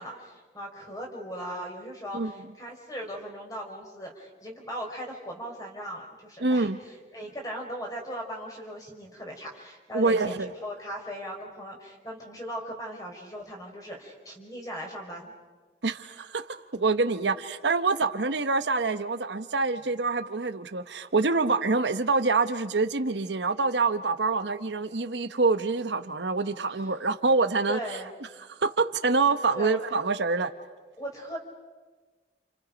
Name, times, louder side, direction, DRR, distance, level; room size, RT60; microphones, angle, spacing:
voice 1, 0.0-15.3 27.7-28.1 29.5-29.8 31.0-31.4, equal, 20° left, 4.4 m, -38 dB
voice 2, 6.4-6.8 9.9-10.5 15.8-27.8 28.5-30.5, right 3 dB, 80° right, 1.0 m, -26 dB
29.5 x 29.0 x 5.2 m
head